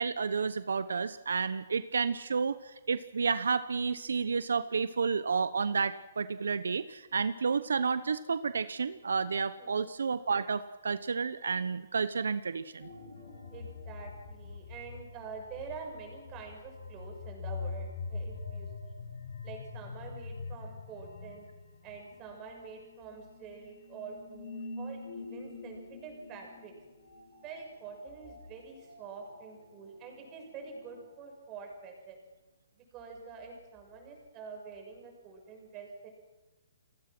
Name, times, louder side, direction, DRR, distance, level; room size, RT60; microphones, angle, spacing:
voice 1, 0.0-12.9, right 5 dB, 85° right, 13 dB, 1.0 m, -31 dB
voice 2, 9.6-9.9 13.5-18.7 19.4-21.5 21.8-26.7 27.4-32.2 32.7-36.1, right 5 dB, 25° right, 2 dB, 6.6 m, -46 dB
sound 1, 12.8-31.0, left 4 dB, 80° left, 7.6 m, -44 dB
29.5 x 19.5 x 6.2 m, 1.1 s
hypercardioid pair, 155°, 0 cm